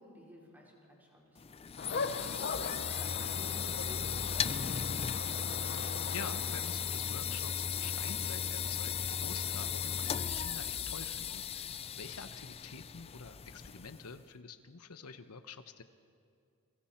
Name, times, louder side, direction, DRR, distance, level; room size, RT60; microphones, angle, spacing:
voice 1, 0.0-1.6 2.6-5.3, left 1 dB, 10° right, -4 dB, 4.6 m, -54 dB
sound 1, 1.4-14.2, left 7 dB, 25° left, 0.4 m, -36 dB
sound 2, 1.8-7.5, left 4 dB, 45° left, 0.8 m, -41 dB
voice 2, 5.7-15.8, left 5 dB, 85° left, 10 dB, 0.9 m, -47 dB
29.0 x 23.5 x 4.4 m, 2.3 s
head